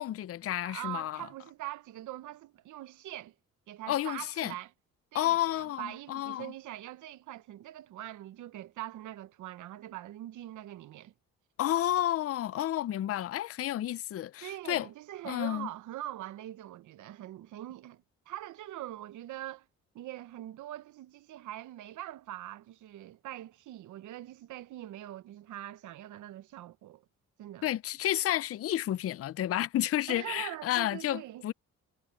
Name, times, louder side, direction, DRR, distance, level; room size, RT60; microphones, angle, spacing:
voice 1, 0.0-1.3 3.9-4.5 5.1-6.5 11.6-14.9 15.2-15.7 27.6-31.5, left 13 dB, 50° left, 0.5 m, -31 dB
voice 2, 0.6-3.3 3.7-4.7 5.1-11.1 14.4-19.7 19.9-27.0 27.4-27.7 30.1-31.4, right 14 dB, 75° right, 0.9 m, -43 dB
cardioid pair, 90°, 30 cm